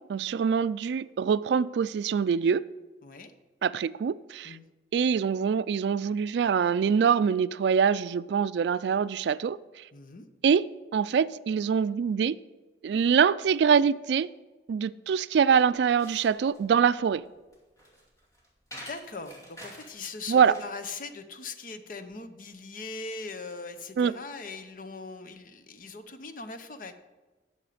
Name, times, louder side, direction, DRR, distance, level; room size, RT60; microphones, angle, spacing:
voice 1, 0.0-2.6 3.6-4.6 4.9-9.6 10.4-10.7 10.9-12.4 12.8-14.3 14.7-17.2 20.3-20.5 24.0-24.1, right 7 dB, 75° right, 0.3 m, -24 dB
voice 2, 9.9-10.3 18.7-26.9, left 3 dB, 50° left, 0.8 m, -40 dB
sound 1, 15.6-20.8, equal, 20° left, 2.4 m, -48 dB
11.0 x 7.1 x 5.0 m
head